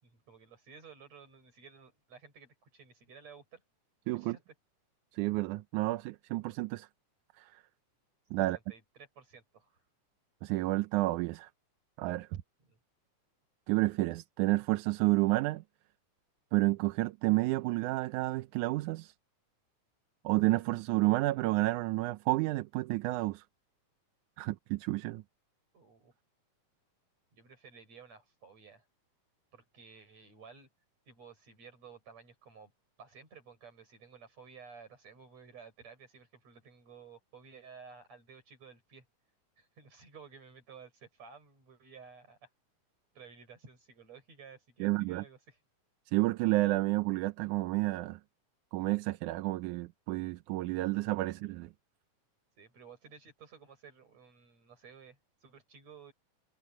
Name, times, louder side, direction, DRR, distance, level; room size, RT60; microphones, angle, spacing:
voice 1, 0.0-3.6 4.1-4.4 8.4-9.8 12.6-12.8 25.7-26.1 27.3-28.9 29.5-30.7 31.1-32.7 33.0-39.1 39.6-42.5 43.1-45.6 52.6-56.1, right 6 dB, 55° right, 7.5 m, -54 dB
voice 2, 4.1-4.4 5.1-6.9 7.4-7.6 8.3-8.6 10.4-11.5 12.0-12.4 13.7-15.6 16.5-19.1 20.2-23.4 24.4-25.2 44.8-45.2 46.1-48.2 48.7-51.7, right 20 dB, 80° right, 2.0 m, -30 dB
omnidirectional pair, 3.7 m